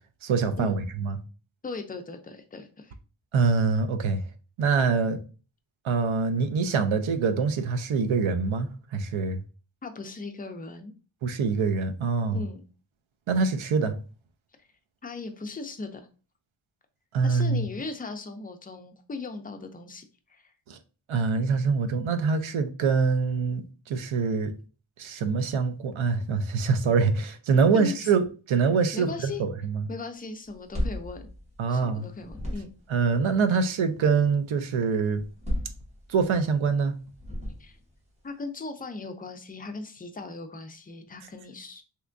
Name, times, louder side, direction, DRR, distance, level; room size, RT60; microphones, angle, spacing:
voice 1, 0.2-1.2 3.3-4.2 4.6-5.2 5.8-9.4 11.2-12.4 13.3-13.9 17.1-17.6 20.7-20.8 21.1-24.5 25.0-29.8 31.6-32.1 32.9-35.2 36.1-36.9, right 5 dB, 80° right, 0.6 m, -25 dB
voice 2, 1.6-2.9 9.8-10.9 12.3-12.6 15.0-16.1 17.2-20.0 20.3-20.5 27.7-27.9 28.9-29.4 29.9-31.3 31.7-32.7 37.6-37.8 38.2-41.8, left 3 dB, 20° left, 0.3 m, -38 dB
sound 1, 30.5-31.9 32.2-33.0 35.2-36.4 37.1-37.9, equal, 15° right, 1.2 m, -33 dB
3.3 x 2.9 x 2.5 m
wide cardioid pair, 155°, 48 cm